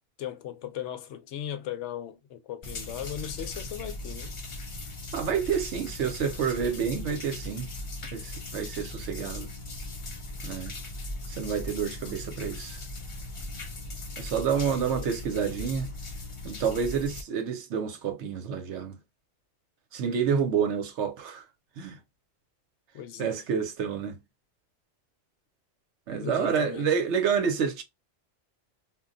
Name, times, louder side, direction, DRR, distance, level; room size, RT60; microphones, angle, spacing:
voice 1, 0.2-4.3 14.6-15.1 22.9-23.4 26.2-26.9, left 10 dB, 75° left, 0.9 m, -38 dB
sound 1, 2.6-17.2, left 2 dB, 40° left, 0.5 m, -39 dB
voice 2, 5.1-7.7 8.1-9.5 10.4-10.7 11.3-12.8 14.2-15.9 16.4-19.0 19.9-21.4 21.8-22.0 23.2-24.2 26.1-27.8, right 7 dB, 75° right, 1.0 m, -29 dB
2.3 x 2.2 x 3.7 m
omnidirectional pair, 1.2 m